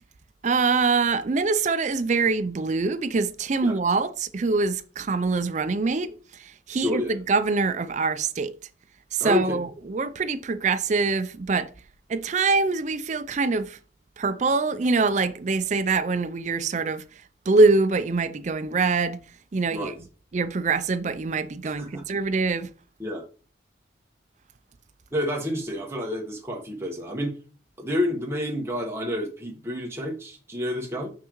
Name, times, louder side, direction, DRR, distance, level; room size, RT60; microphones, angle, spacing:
voice 1, 0.4-8.5 9.1-11.7 12.1-13.8 14.2-17.0 17.5-19.2 19.5-19.9 20.3-22.7, right 4 dB, 40° right, 0.4 m, -24 dB
voice 2, 6.7-7.2 9.2-9.6 19.7-19.9 21.6-22.0 23.0-23.2 25.1-27.4 27.8-31.1, left 1 dB, 15° right, 1.3 m, -29 dB
6.3 x 5.9 x 3.0 m
head